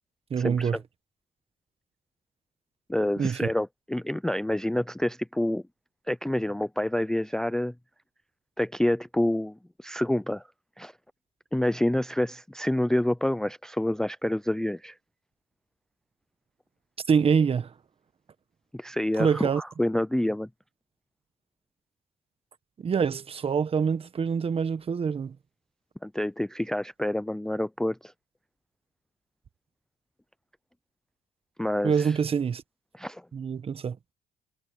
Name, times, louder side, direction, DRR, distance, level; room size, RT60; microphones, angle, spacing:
voice 1, 0.3-0.8 3.2-3.5 17.1-17.7 19.2-19.6 22.8-25.4 31.8-32.6 33.3-34.0, right 6 dB, 35° right, 1.3 m, -25 dB
voice 2, 2.9-5.6 6.1-7.7 8.6-10.4 10.8-10.9 11.5-15.0 18.7-20.5 26.0-28.1 31.6-32.1 33.0-33.2, left 1 dB, 5° left, 0.5 m, -28 dB
cardioid pair, 110°, 17 cm